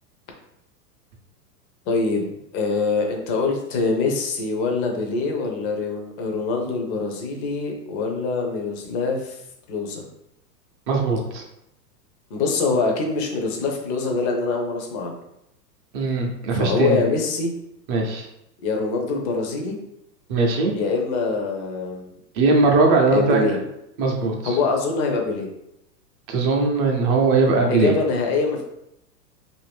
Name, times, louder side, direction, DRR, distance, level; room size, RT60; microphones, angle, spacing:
voice 1, 1.9-9.4 9.7-10.0 12.3-15.2 16.6-17.5 18.6-19.8 20.7-22.1 23.1-23.6 24.4-25.5 27.7-28.6, left 4 dB, 30° left, 2 dB, 0.5 m, -24 dB
voice 2, 10.9-11.4 15.9-17.0 17.9-18.3 20.3-20.7 22.4-23.4 24.0-24.3 26.3-27.9, right 3 dB, 35° right, 1 dB, 0.6 m, -19 dB
2.6 x 2.6 x 3.3 m, 0.82 s
hypercardioid pair, 130°, 50 cm